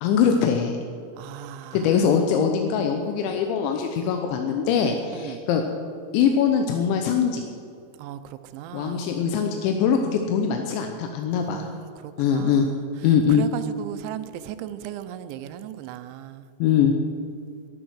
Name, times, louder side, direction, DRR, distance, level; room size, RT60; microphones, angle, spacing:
voice 1, 0.0-0.8 1.7-5.6 6.1-7.5 8.7-11.7 12.2-12.7 13.0-13.4 16.6-16.9, left 7 dB, 85° left, 4 dB, 3.2 m, -22 dB
voice 2, 1.2-2.1 5.1-5.4 8.0-9.0 11.3-16.5, right 12 dB, 85° right, 11 dB, 3.0 m, -37 dB
21.0 x 8.7 x 6.3 m, 2.4 s
omnidirectional pair, 5.3 m